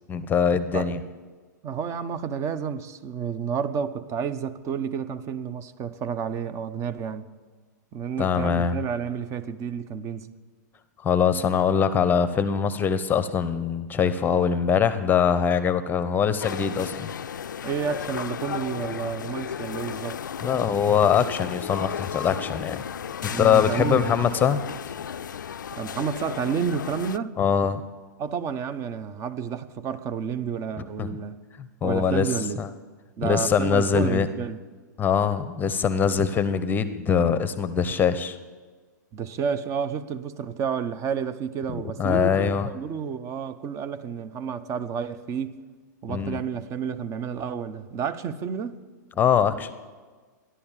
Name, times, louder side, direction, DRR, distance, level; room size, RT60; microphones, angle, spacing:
voice 1, 0.1-1.0 8.2-8.8 11.0-17.1 20.4-22.8 23.4-24.6 27.4-27.8 31.0-31.2 31.6-32.3 32.6-32.7 33.2-34.3 35.0-38.4 41.7-42.7 46.1-46.4 49.2-49.7, left 7 dB, 20° left, 0.8 m, -23 dB
voice 2, 1.6-7.3 7.9-10.3 17.6-20.2 23.3-24.1 25.7-27.4 28.2-31.4 31.8-32.6 33.2-34.6 39.1-45.6 46.0-48.8, right 7 dB, 30° right, 0.8 m, -30 dB
sound 1, 16.4-27.2, left 8 dB, 85° left, 0.4 m, -34 dB
14.0 x 11.0 x 7.3 m
hypercardioid pair, 120°, 10 cm